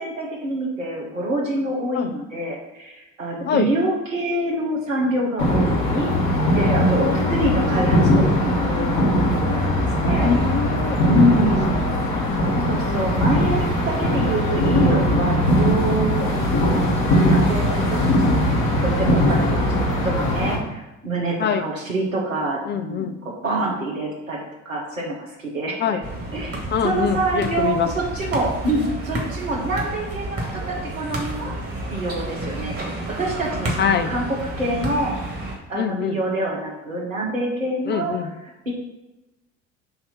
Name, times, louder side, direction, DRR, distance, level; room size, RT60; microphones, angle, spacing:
voice 1, 0.0-10.3 11.0-11.9 12.7-25.8 26.3-31.5 31.9-32.8 33.2-35.1 35.7-38.7, right 1 dB, 85° right, -2 dB, 1.3 m, -26 dB
sound 1, 5.4-20.6, equal, 55° left, 1.6 m, -20 dB
voice 2, 7.0-7.8 10.2-11.0 12.1-12.6 12.9-13.1 17.7-17.9 19.5-19.6 21.4-21.6 22.7-23.1 25.8-26.0 26.7-27.9 33.8-34.1 35.7-36.2 37.9-38.3, left 7 dB, 30° left, 8 dB, 0.5 m, -24 dB
sound 2, 26.0-35.6, right 2 dB, 35° right, 1.9 m, -30 dB
6.6 x 2.8 x 5.7 m, 1.0 s
figure-of-eight pair, 55°, 38 cm